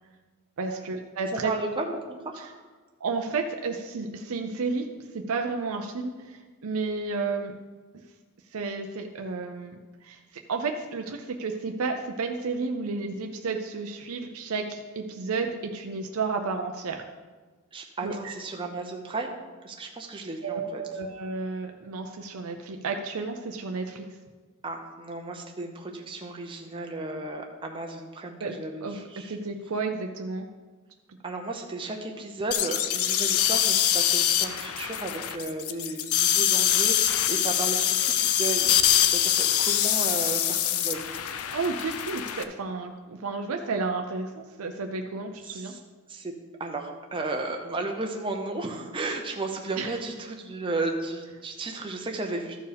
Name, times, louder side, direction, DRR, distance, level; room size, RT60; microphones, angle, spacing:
voice 1, 0.6-1.5 2.4-2.5 3.0-4.9 5.1-7.5 8.5-17.1 18.0-18.3 20.4-24.1 28.4-28.5 28.8-30.5 41.5-45.7 49.8-50.0, right 4 dB, 70° right, 4 dB, 0.6 m, -32 dB
voice 2, 1.4-2.6 17.7-19.3 19.6-20.8 24.6-29.3 31.2-41.0 45.5-45.8 46.1-46.3 46.6-52.6, right 2 dB, 25° right, 2 dB, 0.7 m, -34 dB
sound 1, 32.5-42.4, left 10 dB, 70° left, 0.6 m, -24 dB
13.5 x 4.5 x 5.1 m, 1.4 s
head